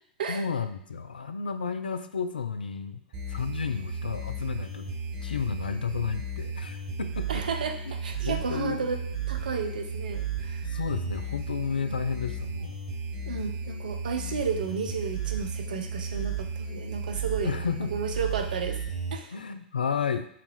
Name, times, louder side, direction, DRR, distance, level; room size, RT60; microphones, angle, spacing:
voice 1, 0.3-3.0 3.3-4.9 5.2-7.4 8.2-8.9 10.7-12.8 17.4-17.9 19.3-20.3, left 6 dB, 75° left, 9 dB, 0.4 m, -32 dB
sound 1, 3.1-19.1, right 4 dB, 45° right, 1.1 m, -34 dB
voice 2, 7.3-9.0 9.3-10.6 11.8-12.0 13.3-17.6 17.9-18.8 19.1-19.3, right 5 dB, 65° right, 6 dB, 0.6 m, -32 dB
5.7 x 2.4 x 3.2 m, 0.70 s
figure-of-eight pair, 100°, 5 cm